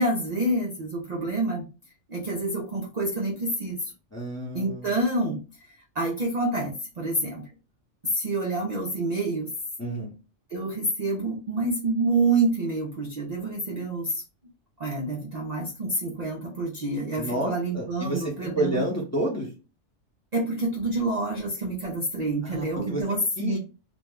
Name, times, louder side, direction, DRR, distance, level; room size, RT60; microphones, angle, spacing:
voice 1, 0.0-1.7 2.1-3.9 4.5-5.4 5.9-7.5 8.0-9.5 10.5-14.2 14.8-18.8 20.3-23.6, right 2 dB, 50° right, -1 dB, 0.5 m, -27 dB
voice 2, 4.1-4.9 9.8-10.1 17.2-19.5 22.4-23.0 23.4-23.6, right 1 dB, 15° left, -4 dB, 0.7 m, -30 dB
2.6 x 2.1 x 3.5 m, 0.32 s
omnidirectional pair, 1.3 m